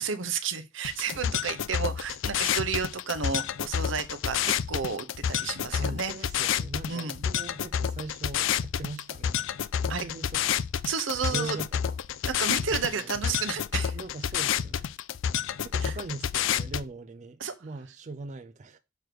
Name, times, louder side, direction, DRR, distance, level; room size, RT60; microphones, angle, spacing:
voice 1, 0.0-6.1 6.9-7.2 9.9-10.0 10.8-11.6 12.2-14.0 15.8-15.9 17.4-17.5, right 6 dB, 85° right, 0.9 m, -32 dB
sound 1, 0.8-16.8, left 9 dB, 80° left, 0.4 m, -29 dB
voice 2, 5.8-9.5 9.8-10.6 11.3-12.0 12.7-13.2 13.9-14.9 15.6-18.8, right 3 dB, 40° right, 0.4 m, -40 dB
6.5 x 3.3 x 5.9 m
head